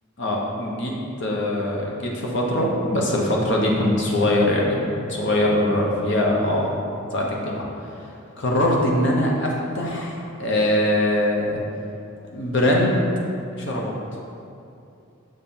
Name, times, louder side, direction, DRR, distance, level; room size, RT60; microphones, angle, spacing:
voice 1, 0.2-6.7 7.1-7.6 8.4-11.6 12.3-13.0 13.6-13.9, left 1 dB, 60° left, -2 dB, 0.9 m, -22 dB
6.4 x 4.3 x 3.7 m, 2.6 s
head